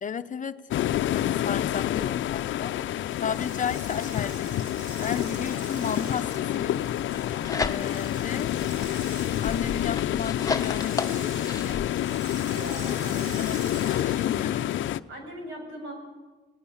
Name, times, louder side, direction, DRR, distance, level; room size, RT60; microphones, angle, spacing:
voice 1, 0.0-0.9 1.1-2.8 3.2-4.6 5.0-6.9 7.5-8.6 9.4-11.9 12.9-14.7, left 7 dB, 40° left, 10 dB, 0.8 m, -34 dB
sound 1, 0.7-15.0, left 12 dB, 75° left, 0.6 m, -28 dB
sound 2, 3.0-14.6, right 1 dB, 45° right, 5.2 m, -45 dB
sound 3, 7.1-8.2 8.6-11.9, left 4 dB, 15° left, 1.1 m, -33 dB
voice 2, 12.5-13.4 15.1-15.9, right 1 dB, 85° right, 3 dB, 7.3 m, -40 dB
27.0 x 18.0 x 7.2 m, 1.3 s
cardioid pair, 90°, 20 cm